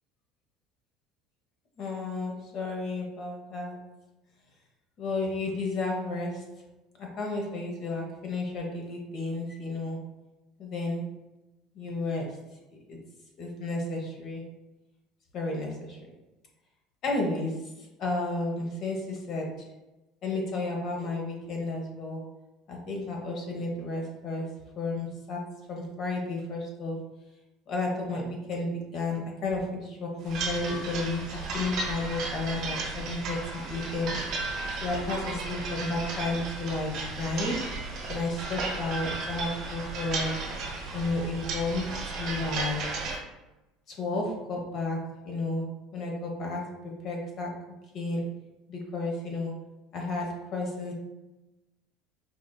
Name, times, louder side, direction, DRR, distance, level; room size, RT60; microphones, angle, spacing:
voice 1, 1.8-3.9 5.0-6.5 7.0-10.1 10.6-11.0 11.8-12.4 12.9-13.0 13.4-14.5 15.3-16.0 17.0-17.7 18.0-19.6 20.2-22.3 22.7-27.0 27.7-29.7 30.0-34.2 34.8-37.7 38.1-40.4 40.9-42.9 43.9-47.6 47.9-48.3 48.7-49.6 49.9-50.9, left 2 dB, 50° left, 0 dB, 0.9 m, -32 dB
sound 1, 30.2-43.2, right 3 dB, 60° right, 1.1 m, -34 dB
4.5 x 2.5 x 2.2 m, 1.0 s
supercardioid pair, 110°, 0 cm